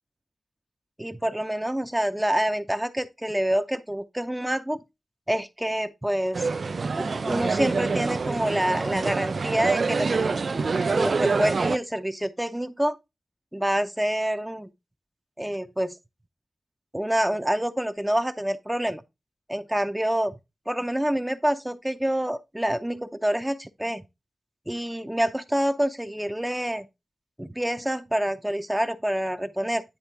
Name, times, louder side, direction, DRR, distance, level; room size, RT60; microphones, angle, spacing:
voice 1, 1.0-4.8 5.3-6.5 7.0-10.6 10.9-13.0 13.5-14.7 15.4-16.0 16.9-19.0 19.5-20.3 20.7-24.0 24.7-26.9 27.4-29.8, right 1 dB, 10° right, 0.6 m, -27 dB
sound 1, 6.3-11.8, right 4 dB, 65° right, 0.3 m, -26 dB
9.9 x 3.3 x 4.5 m
wide cardioid pair, 85°, 0 cm